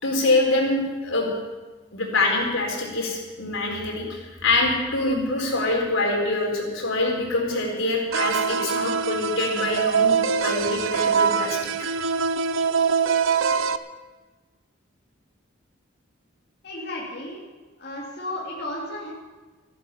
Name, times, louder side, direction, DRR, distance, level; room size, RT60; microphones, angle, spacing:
voice 1, 0.0-1.3 1.9-11.9, left 2 dB, 80° left, 0 dB, 4.2 m, -25 dB
sound 1, 8.1-13.8, right 6 dB, 80° right, 0.7 m, -23 dB
voice 2, 16.6-17.4 17.8-19.1, left 1 dB, 50° left, -5 dB, 2.8 m, -33 dB
14.0 x 12.0 x 7.0 m, 1.3 s
head